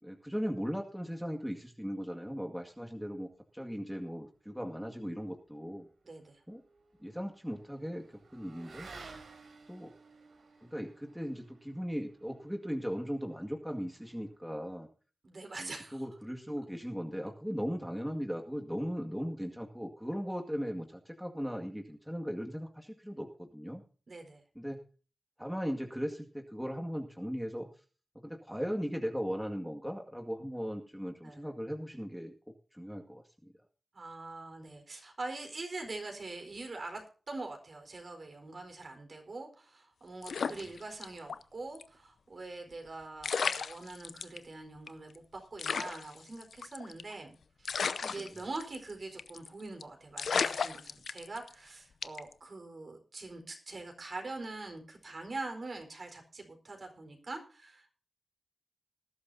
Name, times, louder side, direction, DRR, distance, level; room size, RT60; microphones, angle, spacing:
voice 1, 0.0-5.9 6.5-6.6 7.0-8.9 9.7-9.9 10.6-14.9 15.6-23.8 24.6-24.8 25.4-27.7 28.2-33.5 40.4-40.7 48.1-48.4, equal, ahead, 2 dB, 2.0 m, -38 dB
Motorcycle / Accelerating revving vroom, 5.9-14.6, right 4 dB, 90° right, 3.9 m, -55 dB
voice 2, 6.0-6.4 15.2-16.0 24.1-24.4 31.2-31.4 33.9-57.9, right 3 dB, 55° right, 4 dB, 4.4 m, -44 dB
sound 1, 40.2-41.4 41.7-41.8 42.9-43.0 43.2-44.4 44.9-45.0 45.1-45.2 45.6-47.1 47.6-48.9 49.2-49.5 49.8-49.9 50.2-51.5 52.0-52.3, left 6 dB, 85° left, 0.6 m, -34 dB
20.0 x 11.5 x 2.8 m, 0.38 s
cardioid pair, 60°, 0 cm